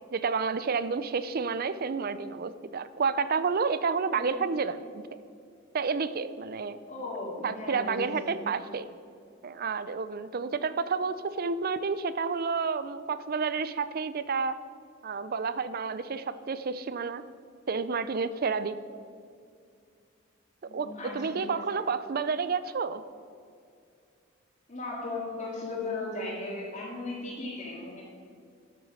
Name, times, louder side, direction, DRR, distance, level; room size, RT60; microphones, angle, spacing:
voice 1, 0.1-5.0 5.7-6.8 7.4-8.9 9.4-14.6 15.0-17.2 17.7-18.8 20.7-23.0, right 5 dB, 50° right, 14 dB, 0.5 m, -30 dB
voice 2, 6.9-8.4 20.6-21.6 24.7-28.0, left 2 dB, 40° left, -6 dB, 2.1 m, -37 dB
13.0 x 6.4 x 6.1 m, 2.3 s
head